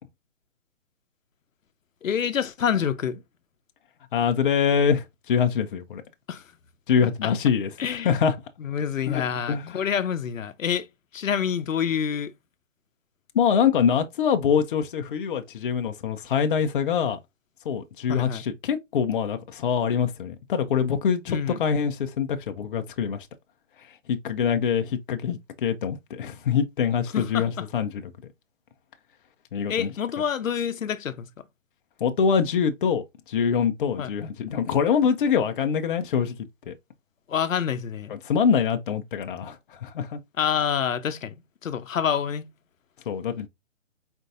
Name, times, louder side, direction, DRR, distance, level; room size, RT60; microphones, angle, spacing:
voice 1, 2.0-3.2 6.3-6.4 7.2-7.3 7.8-8.1 8.6-10.9 11.1-12.3 18.1-18.4 21.3-21.6 27.1-27.6 29.7-31.3 34.0-34.1 37.3-38.1 40.4-41.3 41.6-42.4, left 8 dB, 85° left, 0.8 m, -27 dB
voice 2, 4.1-6.0 6.9-7.7 8.0-8.3 9.1-9.8 13.3-17.2 17.6-23.3 24.1-28.1 29.5-29.9 32.0-36.3 36.7-36.8 38.1-40.2 43.1-43.5, left 7 dB, 40° left, 0.7 m, -24 dB
4.5 x 4.0 x 2.5 m
hypercardioid pair, 155°, 38 cm